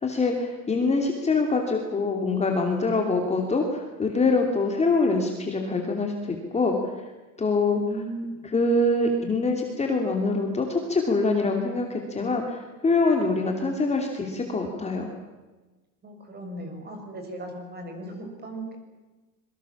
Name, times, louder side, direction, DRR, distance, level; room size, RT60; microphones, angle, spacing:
voice 1, 0.0-6.9 7.4-7.8 8.5-15.1, left 3 dB, 15° left, 2 dB, 2.9 m, -24 dB
voice 2, 7.7-8.4 16.0-18.8, right 1 dB, 25° right, 4 dB, 6.7 m, -37 dB
26.0 x 23.5 x 7.3 m, 1.2 s
cardioid pair, 150°, 41 cm